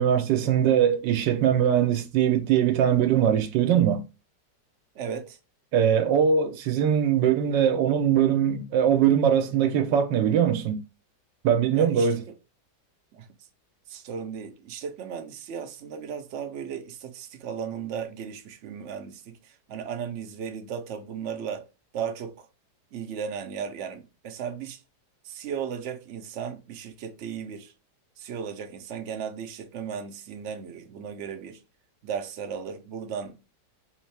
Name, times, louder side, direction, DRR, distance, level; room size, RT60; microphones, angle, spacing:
voice 1, 0.0-4.0 5.7-10.8 11.4-12.2, right 8 dB, 85° right, 1.3 m, -21 dB
voice 2, 4.9-5.4 11.7-12.2 13.1-13.3 13.9-21.7 21.9-22.5 22.9-24.8 25.2-27.7 28.2-31.6 32.0-33.4, right 7 dB, 60° right, 0.8 m, -35 dB
3.5 x 3.2 x 3.2 m
omnidirectional pair, 1.9 m